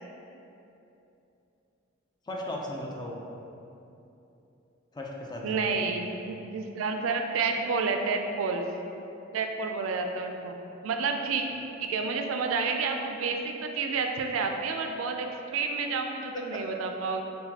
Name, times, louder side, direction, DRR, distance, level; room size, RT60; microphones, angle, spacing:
voice 1, 2.3-3.1 4.9-5.8 16.3-16.6, left 1 dB, 20° left, -2 dB, 0.4 m, -36 dB
voice 2, 5.4-8.6 9.3-10.6 10.8-11.4 11.8-17.2, right 4 dB, 80° right, 4 dB, 0.3 m, -30 dB
5.7 x 2.2 x 2.8 m, 2.9 s
head